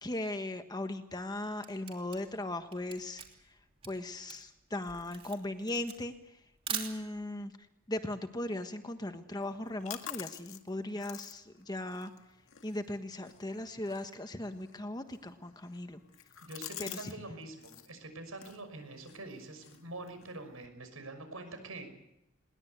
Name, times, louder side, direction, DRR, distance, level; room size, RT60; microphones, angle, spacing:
voice 1, 0.0-3.2 3.8-6.1 6.7-7.5 7.9-12.1 12.6-16.0 16.8-17.1, left 1 dB, 20° left, 8 dB, 1.4 m, -38 dB
Camera, 1.2-7.4, right 6 dB, 25° right, 3.2 m, -43 dB
sound 1, 9.4-17.2 17.4-17.9 18.3-20.7, left 11 dB, 75° left, 1.9 m, -49 dB
voice 2, 16.5-21.9, right 2 dB, 85° right, 8 dB, 6.1 m, -45 dB
21.5 x 20.0 x 8.2 m, 0.87 s
head